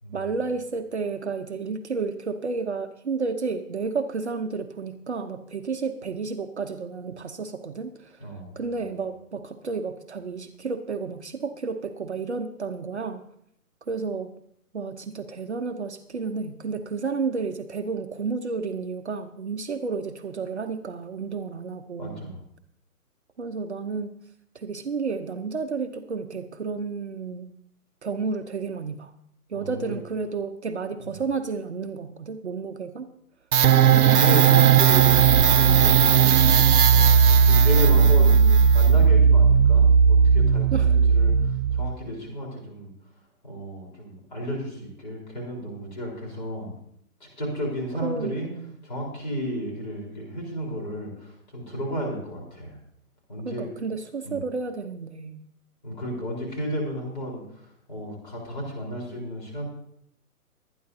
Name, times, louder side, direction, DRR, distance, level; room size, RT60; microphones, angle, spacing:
voice 1, 0.1-8.2 8.6-13.2 13.9-14.3 14.7-22.3 23.4-24.1 24.5-27.5 28.0-29.1 29.5-33.1 33.9-34.3 37.9-38.7 40.7-41.0 48.0-48.8 53.4-55.4, right 4 dB, 50° right, 5 dB, 0.8 m, -31 dB
voice 2, 8.2-8.6 22.0-22.4 29.5-30.0 33.6-38.3 38.7-42.9 43.4-46.7 47.2-48.5 48.8-52.8 53.3-53.7 54.2-54.4 55.8-57.4 57.9-59.7, equal, 30° left, -2 dB, 4.2 m, -32 dB
sound 1, 33.5-42.0, right 7 dB, 80° right, 0.8 m, -16 dB
24.0 x 9.7 x 2.8 m, 0.70 s
hypercardioid pair, 175°, 45 cm